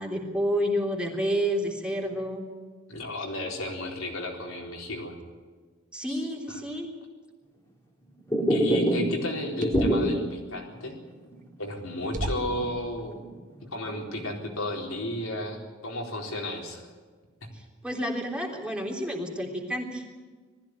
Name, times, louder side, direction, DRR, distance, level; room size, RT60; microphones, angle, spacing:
voice 1, 0.0-2.4 5.9-6.9 17.8-20.0, equal, 5° right, 0 dB, 3.4 m, -29 dB
voice 2, 2.9-5.1 6.1-6.6 8.5-11.0 11.6-13.2 13.6-16.8 17.4-17.5, left 1 dB, 80° left, 1 dB, 4.2 m, -33 dB
sound 1, 8.2-10.3 10.7-10.8 11.2-11.3 11.8-13.3 13.6-14.2, equal, 15° left, 3.0 m, -26 dB
sound 2, 9.6-10.1 11.4-11.5 12.1-12.7, right 1 dB, 40° right, 1.8 m, -32 dB
20.0 x 15.0 x 9.6 m, 1.4 s
head